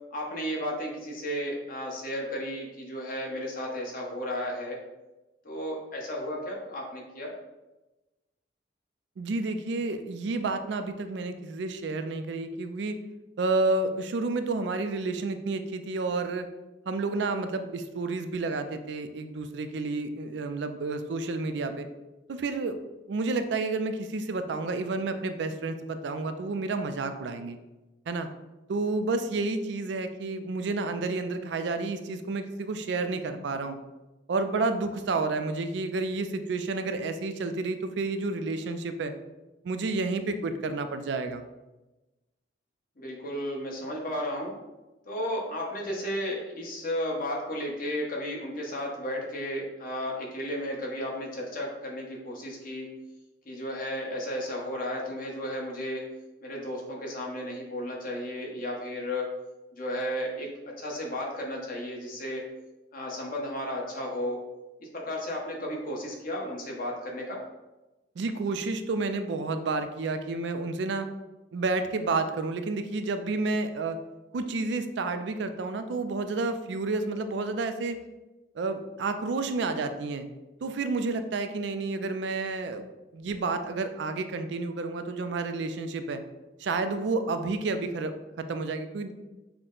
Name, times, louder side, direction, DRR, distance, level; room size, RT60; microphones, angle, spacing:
voice 1, 0.1-4.8 5.4-7.3 43.0-44.6 45.0-52.9 53.4-56.0 56.4-59.2 59.7-62.4 62.9-64.4 64.8-67.4, equal, 50° left, -2 dB, 1.0 m, -34 dB
voice 2, 9.2-13.0 13.4-16.5 16.9-21.9 22.3-22.8 23.1-27.6 28.1-28.3 28.7-33.8 34.3-39.1 39.6-41.5 68.2-71.1 71.5-74.0 74.3-78.0 78.5-80.3 80.6-82.8 83.1-86.2 86.6-89.1, right 3 dB, 70° right, 9 dB, 0.4 m, -30 dB
5.9 x 2.1 x 3.8 m, 1.1 s
head